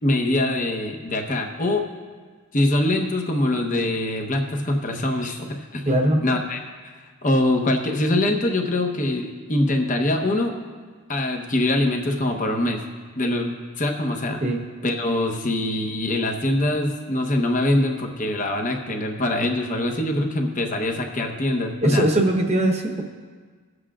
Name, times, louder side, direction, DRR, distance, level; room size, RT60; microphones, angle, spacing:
voice 1, 0.0-1.9 2.5-5.8 6.2-10.6 11.1-12.8 13.1-14.4 14.8-22.1, left 1 dB, 35° left, 3 dB, 1.0 m, -23 dB
voice 2, 5.9-6.2 14.4-14.6 21.8-23.0, right 1 dB, 30° right, 2 dB, 1.0 m, -20 dB
22.5 x 8.0 x 2.5 m, 1.5 s
head